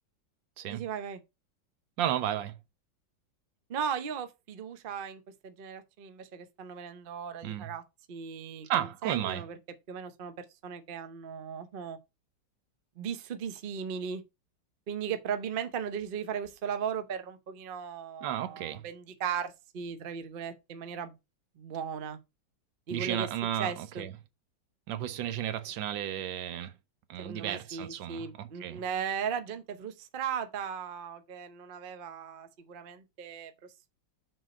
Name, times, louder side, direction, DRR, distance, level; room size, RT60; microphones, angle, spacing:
voice 1, 0.7-1.2 3.7-7.8 8.1-9.6 9.9-12.0 13.0-14.2 14.9-21.1 21.6-22.2 22.9-23.3 23.6-24.1 27.2-33.5, right 7 dB, 90° right, 0.4 m, -37 dB
voice 2, 2.0-2.6 7.4-7.7 8.6-9.4 18.2-18.8 22.9-24.1 24.9-26.7 27.1-28.8, right 11 dB, 70° right, 1.4 m, -33 dB
6.2 x 3.9 x 5.1 m
omnidirectional pair, 2.2 m